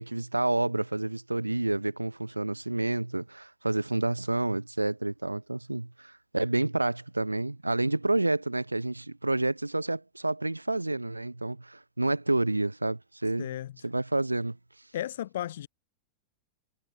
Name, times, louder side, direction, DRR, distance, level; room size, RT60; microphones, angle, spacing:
voice 1, 0.0-13.5 13.8-14.6, right 2 dB, 85° right, 1.9 m, -29 dB
voice 2, 13.4-13.7 14.9-15.7, left 12 dB, 60° left, 2.6 m, -34 dB
figure-of-eight pair, 90°, 0 cm